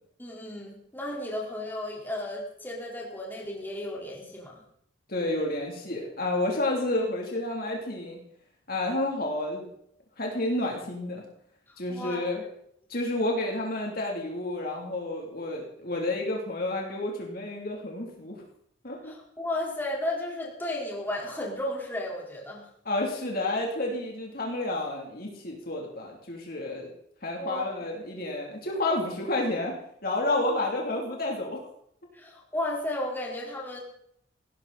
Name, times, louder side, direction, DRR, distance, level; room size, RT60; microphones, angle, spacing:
voice 1, 0.2-4.6 11.7-12.3 19.0-22.7 27.4-27.6 30.3-30.4 32.1-33.8, left 1 dB, 10° left, -4 dB, 4.4 m, -34 dB
voice 2, 5.1-8.2 8.7-9.6 10.2-11.2 11.8-12.4 12.9-18.4 18.8-19.1 22.8-26.9 27.2-29.7 30.0-31.7, left 2 dB, 50° left, -1 dB, 3.3 m, -30 dB
18.5 x 17.5 x 4.3 m, 0.70 s
head